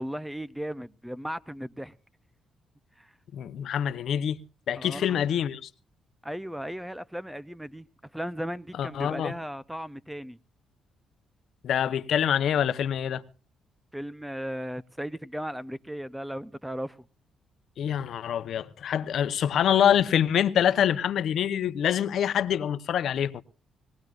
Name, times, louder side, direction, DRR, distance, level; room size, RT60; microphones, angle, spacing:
voice 1, 0.0-1.9 3.0-3.1 4.8-5.2 6.2-7.9 8.1-10.4 13.9-17.1, equal, 5° right, 0.6 m, -36 dB
voice 2, 3.3-4.4 4.7-5.7 8.8-9.3 11.6-13.2 17.8-23.4, left 9 dB, 70° left, 0.9 m, -25 dB
21.5 x 17.5 x 2.5 m
cardioid pair, 90°, 0 cm